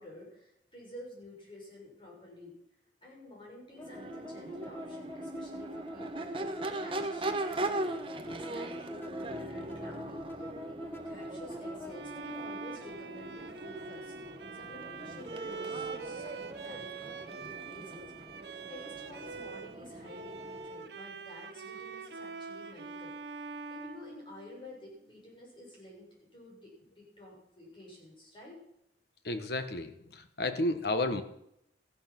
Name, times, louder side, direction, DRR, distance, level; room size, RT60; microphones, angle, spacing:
voice 1, 0.0-2.6 3.0-7.9 8.2-14.1 14.5-18.3 18.7-23.4 23.7-26.1 26.3-28.6, left 1 dB, 30° left, -3 dB, 7.0 m, -50 dB
Crowd / Race car auto racing / Accelerating revving vroom, 3.7-20.8, right 2 dB, 30° right, 1.1 m, -40 dB
sound 1, 3.8-12.0, equal, 15° left, 1.4 m, -43 dB
Bowed string instrument, 11.9-19.8 20.0-24.8, right 4 dB, 70° right, 0.9 m, -44 dB
voice 2, 29.2-31.2, left 2 dB, 65° left, 9 dB, 1.3 m, -32 dB
14.5 x 11.5 x 6.0 m, 0.79 s
head